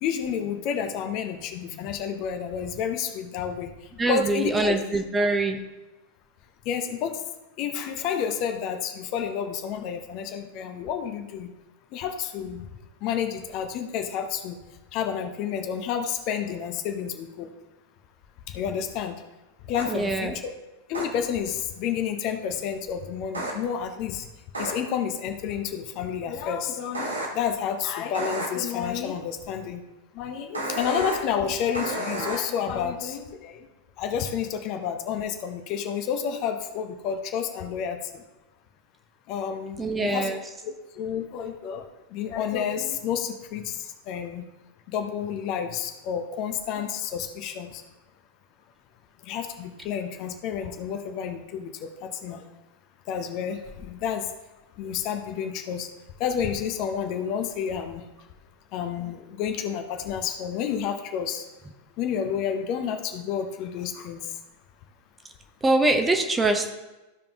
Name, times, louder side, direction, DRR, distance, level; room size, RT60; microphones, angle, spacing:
voice 1, 0.0-3.7 4.1-4.8 6.6-7.2 7.6-11.5 11.9-12.7 13.0-14.6 14.9-17.5 18.5-19.1 19.7-20.5 20.9-24.3 24.6-29.8 30.1-33.7 34.0-38.2 39.3-40.4 40.6-41.9 42.1-44.5 44.9-47.8 49.2-52.5 53.1-54.3 54.8-55.9 56.2-58.0 58.7-61.4 62.0-64.3, left 8 dB, 40° left, 6 dB, 0.8 m, -30 dB
voice 2, 4.0-5.6 19.9-20.3 39.8-40.4 65.6-66.7, right 2 dB, 10° right, 5 dB, 0.9 m, -23 dB
sound 1, 19.8-19.9 20.9-21.0 23.3-23.5 24.5-24.7 26.9-27.3 28.1-28.5 30.5-31.2 31.7-32.4, right 1 dB, 75° right, 1.5 m, -30 dB
14.5 x 5.2 x 2.9 m, 1.1 s
figure-of-eight pair, 90°, 0 cm